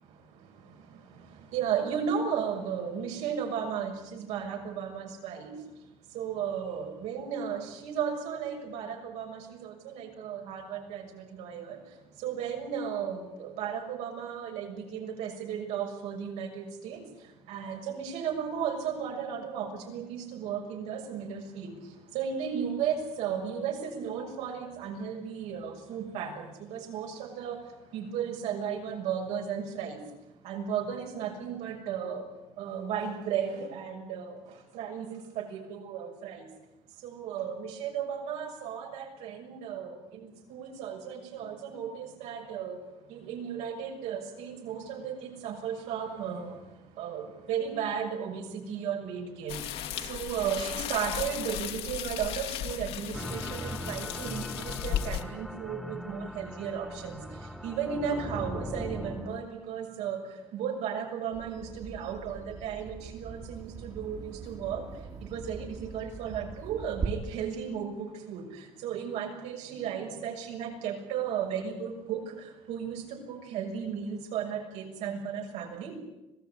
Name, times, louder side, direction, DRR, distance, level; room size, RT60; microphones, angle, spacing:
voice 1, 1.5-5.5 6.1-11.8 12.2-17.0 17.5-21.7 22.1-26.3 26.7-27.6 27.9-30.0 30.4-32.2 32.6-34.4 34.7-36.4 37.0-39.9 40.5-42.8 43.1-46.5 47.0-47.2 47.5-49.6 50.1-57.2 57.6-60.2 60.5-64.8 65.2-68.4 68.8-72.2 72.7-75.9, right 7 dB, 80° right, 2 dB, 6.6 m, -34 dB
sound 1, 49.5-55.2, left 10 dB, 60° left, 2.2 m, -35 dB
sound 2, 53.1-59.4, equal, ahead, 1.4 m, -39 dB
Bird vocalization bird call bird song, 61.3-67.1, right 5 dB, 30° right, 2.4 m, -41 dB
26.0 x 18.0 x 9.8 m, 0.97 s
cardioid pair, 165°, 11 cm